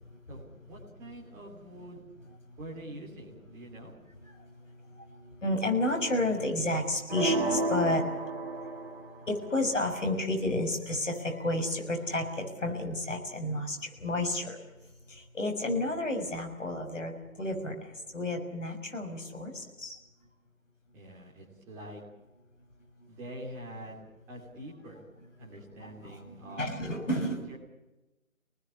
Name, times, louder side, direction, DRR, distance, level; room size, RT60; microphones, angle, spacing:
voice 1, 0.3-2.0 2.6-3.9 20.9-22.0 23.1-24.0 24.3-25.0 25.4-26.7 27.3-27.6, right 1 dB, 5° right, -4 dB, 2.7 m, -45 dB
voice 2, 5.4-8.0 9.3-13.8 14.0-14.5 15.3-17.1 17.4-17.8 18.1-20.0 25.8-27.4, left 1 dB, 60° left, 4 dB, 6.3 m, -31 dB
sound 1, 7.1-9.2, right 2 dB, 45° right, 2.6 m, -31 dB
26.5 x 19.5 x 8.5 m, 1.0 s
figure-of-eight pair, 160°, 41 cm